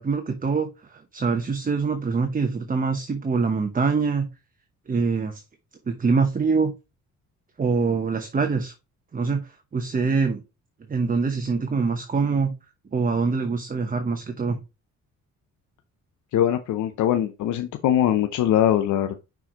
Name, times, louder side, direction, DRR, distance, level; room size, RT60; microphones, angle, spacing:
voice 1, 0.0-4.3 4.9-5.4 5.9-6.7 7.6-8.7 9.1-10.4 10.9-12.5 12.9-14.6, right 4 dB, 30° right, 6 dB, 1.0 m, -24 dB
voice 2, 16.3-19.2, left 11 dB, 75° left, 7 dB, 0.7 m, -22 dB
5.8 x 4.6 x 3.8 m, 0.27 s
cardioid pair, 90°, 30 cm